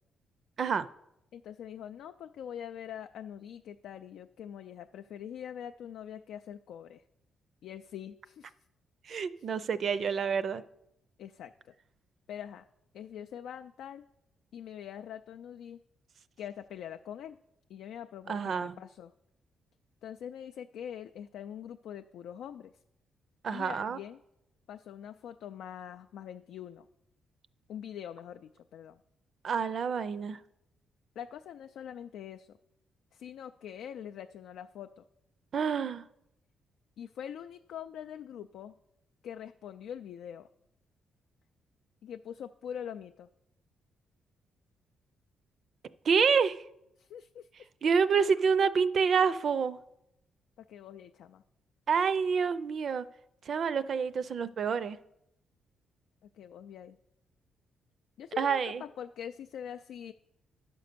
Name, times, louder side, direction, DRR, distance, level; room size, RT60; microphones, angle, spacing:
voice 1, 1.3-7.0 7.6-8.5 9.4-9.5 11.2-11.7 12.3-12.7 12.9-14.1 14.5-15.8 16.4-17.4 17.7-19.1 20.0-22.7 23.5-24.2 24.7-26.9 27.7-29.0 31.2-32.6 33.1-35.0 37.0-38.7 39.2-40.5 42.0-43.3 47.0-47.7 50.7-51.4 56.3-57.0 58.2-60.1, left 9 dB, 80° left, 7 dB, 0.3 m, -44 dB
voice 2, 9.1-10.6 18.3-18.8 23.4-24.0 29.4-30.4 35.5-36.1 46.0-46.6 47.8-49.8 51.9-53.1 53.5-55.0 58.4-58.8, right 6 dB, 55° right, 15 dB, 0.5 m, -28 dB
11.0 x 5.2 x 6.7 m, 0.83 s
cardioid pair, 105°, 0 cm